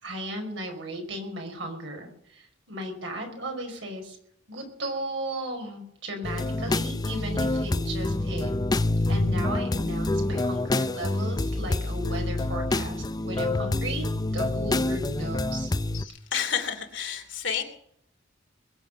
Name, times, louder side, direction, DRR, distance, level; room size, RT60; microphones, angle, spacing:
voice 1, 0.0-4.2 4.5-8.5 9.1-15.7, right 1 dB, 70° right, 3 dB, 5.2 m, -36 dB
sound 1, 6.2-16.0, left 2 dB, 20° left, 0.5 m, -27 dB
voice 2, 15.9-17.6, left 8 dB, 75° left, 5 dB, 2.8 m, -30 dB
21.5 x 7.9 x 6.7 m, 0.69 s
head